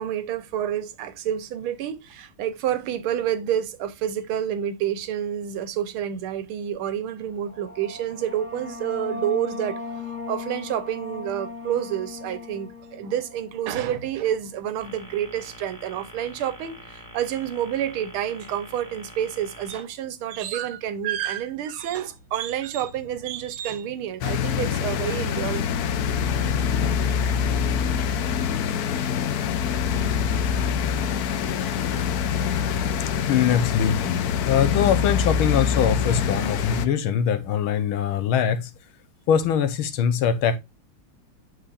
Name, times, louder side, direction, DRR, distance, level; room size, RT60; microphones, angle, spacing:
voice 1, 0.0-25.7, right 10 dB, 90° right, 1.7 m, -29 dB
sound 1, 7.3-14.5, left 3 dB, 50° left, 1.9 m, -38 dB
sound 2, 14.8-19.8, equal, ahead, 2.4 m, -45 dB
sound 3, 24.2-36.9, left 7 dB, 65° left, 1.0 m, -25 dB
voice 2, 33.3-34.2 34.5-38.7 39.3-40.6, left 8 dB, 80° left, 1.7 m, -22 dB
7.9 x 6.4 x 2.4 m
omnidirectional pair, 2.3 m